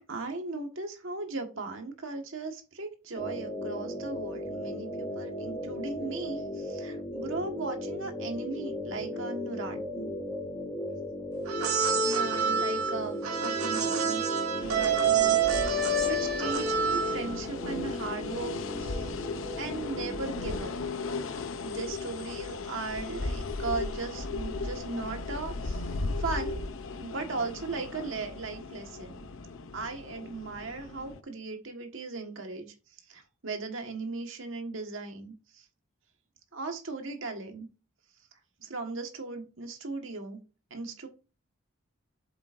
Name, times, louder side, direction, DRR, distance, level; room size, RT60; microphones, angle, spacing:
voice 1, 0.0-10.1 11.9-14.2 14.6-19.1 19.6-20.7 21.6-25.8 26.2-26.6 27.0-29.3 29.7-32.7 33.1-35.3 36.5-37.7 38.6-40.4 40.7-41.1, right 3 dB, 65° right, 1.6 m, -37 dB
sound 1, 3.1-20.6, left 1 dB, 10° left, 2.5 m, -37 dB
sound 2, 11.5-17.4, right 5 dB, 90° right, 1.8 m, -27 dB
sound 3, 14.6-31.2, left 3 dB, 70° left, 0.7 m, -37 dB
7.9 x 7.1 x 2.6 m
head